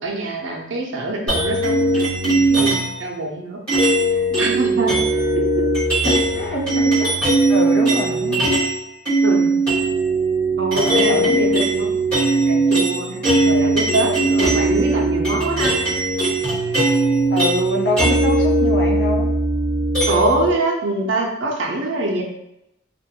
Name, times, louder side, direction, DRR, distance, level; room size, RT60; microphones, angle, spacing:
voice 1, 0.0-3.6 4.4-5.0 5.4-5.5 9.2-9.6 10.6-15.7 20.1-22.2, right 2 dB, 75° right, 0 dB, 0.6 m, -24 dB
sound 1, 1.3-3.0 3.7-8.8 9.1-20.5, right 2 dB, 5° left, 1.1 m, -19 dB
voice 2, 3.8-4.4 6.0-7.2 7.5-8.5 10.8-11.5 17.3-19.3, left 2 dB, 65° left, -2 dB, 0.7 m, -25 dB
2.4 x 2.2 x 2.8 m, 0.84 s
head